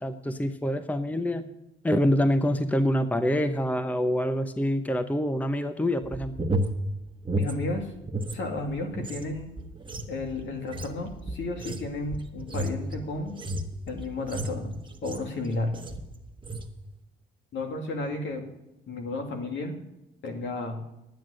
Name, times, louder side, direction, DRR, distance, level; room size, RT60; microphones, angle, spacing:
voice 1, 0.0-1.4 1.8-6.3, equal, 10° left, 10 dB, 0.8 m, -26 dB
sound 1, 6.0-8.4 8.7-15.4 15.7-16.1 16.4-16.7, right 1 dB, 25° right, 1.2 m, -33 dB
voice 2, 7.4-7.9 8.3-9.5 10.1-13.4 13.9-14.7 15.0-15.7 17.5-18.4 18.9-19.7 20.2-20.8, left 2 dB, 70° left, 4 dB, 2.5 m, -32 dB
10.5 x 9.3 x 6.4 m, 0.91 s
cardioid pair, 90°, 20 cm